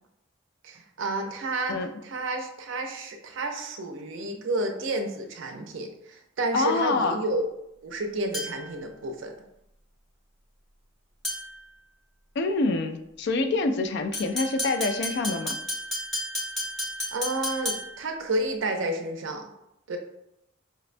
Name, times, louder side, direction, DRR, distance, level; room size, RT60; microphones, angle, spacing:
voice 1, 0.6-1.8 2.0-7.5 7.8-9.3 17.1-19.5 19.9-20.0, right 2 dB, 65° right, 4 dB, 0.5 m, -30 dB
voice 2, 6.5-7.2 12.4-15.5, left 3 dB, 55° left, 7 dB, 0.3 m, -26 dB
sound 1, 8.3-8.8 11.2-11.7 14.1-18.1, left 1 dB, ahead, 0.7 m, -33 dB
5.0 x 2.1 x 2.5 m, 0.83 s
head